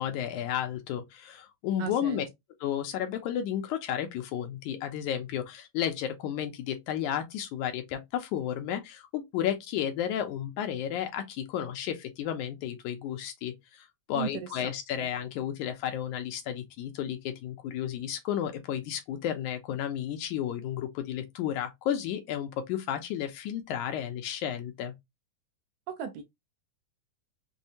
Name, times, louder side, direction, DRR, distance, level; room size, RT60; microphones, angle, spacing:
voice 1, 0.0-2.2 2.6-24.9, left 10 dB, 80° left, 2.0 m, -32 dB
voice 2, 1.8-2.2 14.1-14.5 15.0-15.1 25.9-26.2, right 9 dB, 80° right, 1.8 m, -36 dB
6.2 x 2.1 x 2.7 m
omnidirectional pair, 3.7 m